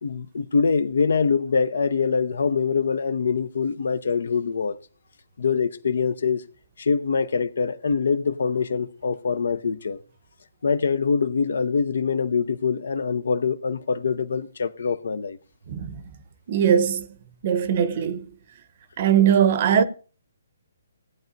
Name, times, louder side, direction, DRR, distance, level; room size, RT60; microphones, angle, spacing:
voice 1, 0.0-4.8 5.4-6.4 6.8-10.0 10.6-15.4, left 5 dB, 65° left, 0.6 m, -24 dB
voice 2, 15.7-16.0 16.5-17.1 17.4-18.3 19.0-19.8, right 8 dB, 45° right, 0.9 m, -20 dB
17.5 x 9.3 x 2.6 m
figure-of-eight pair, 135°, 0 cm